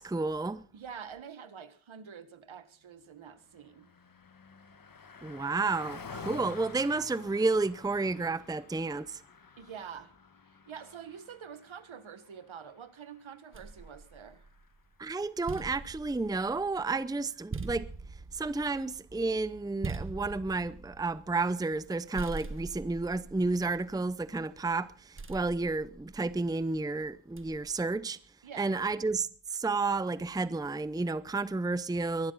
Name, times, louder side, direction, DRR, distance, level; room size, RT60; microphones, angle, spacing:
voice 1, 0.0-0.6 5.2-9.2 15.0-17.9 18.3-28.2 28.6-32.3, right 3 dB, 10° right, 0.7 m, -31 dB
voice 2, 0.7-3.9 9.6-10.1 10.7-14.5 28.4-28.7, right 7 dB, 70° right, 1.7 m, -46 dB
Car passing by, 3.1-14.8, left 5 dB, 45° left, 1.6 m, -50 dB
sound 1, 13.5-14.8 15.2-21.9 22.2-24.4 25.2-26.6 27.4-27.8, right 3 dB, 25° right, 1.1 m, -43 dB
23.0 x 12.0 x 4.1 m
cardioid pair, 75°, 49 cm